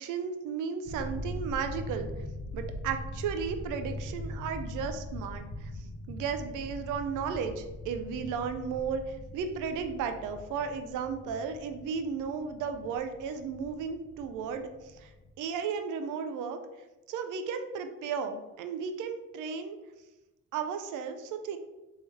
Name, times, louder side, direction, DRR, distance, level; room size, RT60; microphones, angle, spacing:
voice 1, 0.0-2.1 2.5-5.7 6.1-15.1 15.4-16.6 17.1-19.8 20.5-21.6, right 6 dB, 85° right, 7 dB, 0.5 m, -34 dB
sound 1, 0.8-15.3, left 1 dB, 40° left, 1.0 m, -41 dB
3.6 x 3.4 x 4.2 m, 1.0 s
cardioid pair, 90°, 30 cm